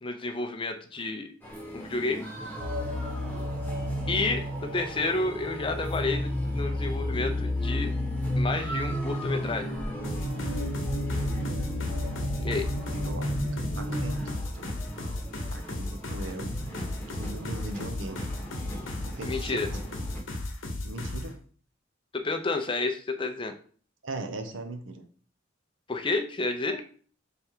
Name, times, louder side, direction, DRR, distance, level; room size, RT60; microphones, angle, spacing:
voice 1, 0.0-1.3 1.7-2.3 4.1-7.9 8.4-9.7 12.4-12.7 19.2-19.7 22.1-23.5 25.9-26.8, left 3 dB, 25° left, 6 dB, 0.5 m, -30 dB
sound 1, 1.4-20.2, right 1 dB, 10° left, 1.0 m, -41 dB
sound 2, 2.6-14.3, left 1 dB, 35° right, 1.7 m, -31 dB
sound 3, 10.0-21.3, left 1 dB, 80° left, 0.9 m, -35 dB
voice 2, 12.9-13.3 13.7-14.8 15.5-16.6 17.1-18.3 19.0-19.8 20.8-21.4 24.0-25.0, right 2 dB, 75° right, 6 dB, 0.7 m, -39 dB
3.4 x 3.3 x 4.4 m, 0.44 s
head